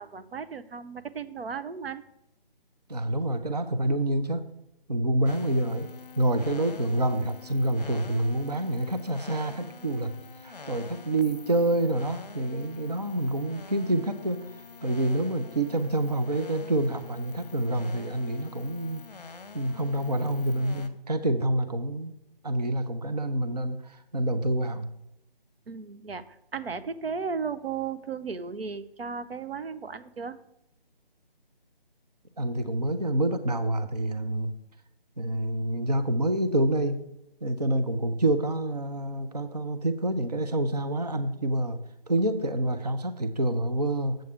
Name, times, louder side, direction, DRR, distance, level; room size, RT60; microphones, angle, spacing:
voice 1, 0.0-2.0 25.7-26.2 26.5-30.4, right 5 dB, 80° right, 12 dB, 0.7 m, -35 dB
voice 2, 2.9-4.4 4.9-5.9 6.2-10.1 10.4-14.5 14.8-19.0 19.5-22.1 22.4-24.9 32.4-34.5 35.2-37.0 37.4-41.8 42.1-44.2, right 1 dB, 45° right, 10 dB, 0.5 m, -27 dB
sound 1, 5.3-20.9, left 4 dB, 45° left, 0.7 m, -46 dB
8.2 x 7.6 x 3.5 m, 0.85 s
hypercardioid pair, 180°, 29 cm